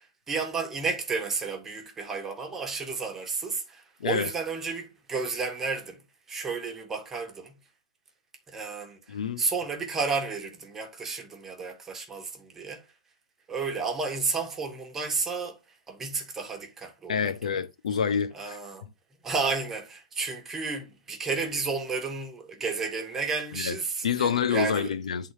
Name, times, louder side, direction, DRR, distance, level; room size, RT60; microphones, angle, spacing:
voice 1, 0.0-6.0 6.3-7.5 8.5-9.0 9.4-12.8 13.5-15.6 15.9-17.2 17.4-17.6 18.3-18.9 19.2-24.9, right 4 dB, 10° right, 1.5 m, -32 dB
voice 2, 4.0-4.3 9.1-9.4 17.1-18.6 23.5-23.8 24.0-25.3, left 7 dB, 90° left, 1.0 m, -27 dB
10.0 x 3.9 x 4.8 m
hypercardioid pair, 155°, 4 cm